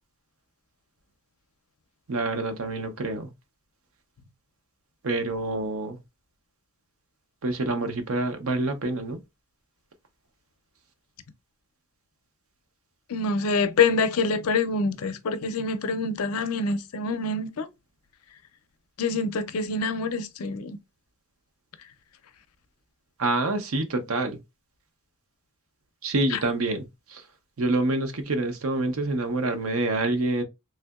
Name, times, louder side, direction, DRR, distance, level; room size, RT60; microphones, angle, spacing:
voice 1, 2.1-3.3 5.0-6.0 7.4-9.2 23.2-24.4 26.0-27.2 27.6-30.4, right 2 dB, 70° right, 0.6 m, -27 dB
voice 2, 13.1-17.7 19.0-20.8 26.3-26.4, left 4 dB, 80° left, 0.5 m, -26 dB
3.3 x 2.7 x 2.3 m
head